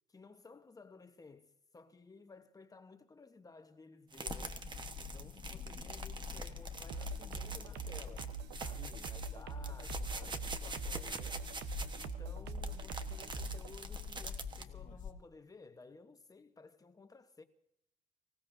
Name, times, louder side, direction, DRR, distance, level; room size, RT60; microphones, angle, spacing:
voice 1, 0.1-4.6 5.0-8.3 8.6-11.4 11.9-17.4, left 4 dB, 20° left, 1.1 m, -56 dB
sound 1, 4.1-14.7, right 3 dB, 25° right, 1.3 m, -46 dB
sound 2, 4.3-15.1, left 7 dB, 50° left, 1.6 m, -46 dB
sound 3, 6.9-13.7, right 7 dB, 85° right, 1.0 m, -44 dB
25.0 x 16.0 x 2.7 m
cardioid pair, 110°, 17 cm